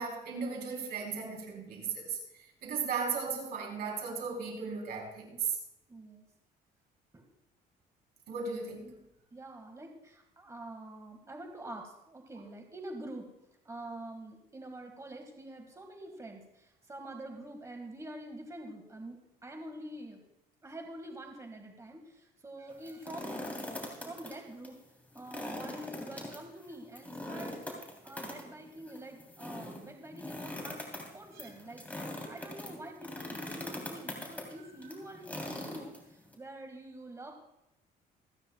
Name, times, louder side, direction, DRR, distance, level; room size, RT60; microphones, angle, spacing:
voice 1, 0.0-5.6 8.3-9.0 31.3-31.5 32.2-32.4, right 5 dB, 65° right, 0 dB, 3.8 m, -36 dB
voice 2, 5.9-6.2 7.1-7.3 9.3-13.3 13.6-20.2 20.6-23.6 24.0-24.8 25.1-30.9 31.1-37.3, right 1 dB, 20° right, 3 dB, 1.9 m, -46 dB
sound 1, 22.7-24.3 24.6-24.7 25.1-36.3, left 1 dB, 10° left, 3.4 m, -42 dB
27.5 x 9.7 x 2.4 m, 0.86 s
cardioid pair, 110°, 17 cm